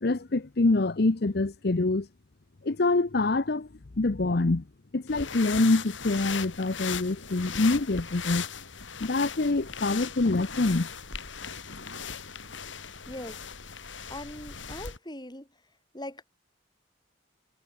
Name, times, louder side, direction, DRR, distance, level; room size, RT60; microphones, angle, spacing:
voice 1, 0.0-2.1 2.6-3.7 4.0-4.6 4.9-8.5 9.0-10.9, left 2 dB, 55° left, 0.8 m, -25 dB
sound 1, 5.1-15.0, left 6 dB, 75° left, 3.1 m, -38 dB
voice 2, 13.1-13.4 14.1-15.5 15.9-16.2, left 1 dB, 20° left, 4.7 m, -40 dB
head